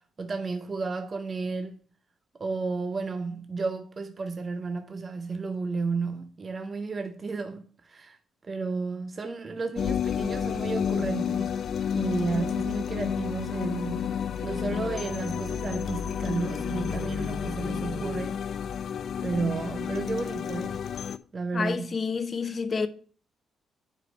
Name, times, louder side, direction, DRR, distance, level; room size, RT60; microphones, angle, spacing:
voice 1, 0.2-1.8 2.4-8.2 8.4-11.6 11.9-14.1 14.4-18.4 19.2-20.8 21.3-22.0 22.4-22.6, right 4 dB, 35° right, 0.7 m, -32 dB
sound 1, 9.8-21.2, left 8 dB, 60° left, 0.4 m, -31 dB
sound 2, 12.2-18.2, left 3 dB, 85° left, 1.3 m, -40 dB
voice 2, 21.5-22.9, left 5 dB, 40° left, 0.8 m, -29 dB
6.9 x 4.5 x 5.2 m
cardioid pair, 90°, 0 cm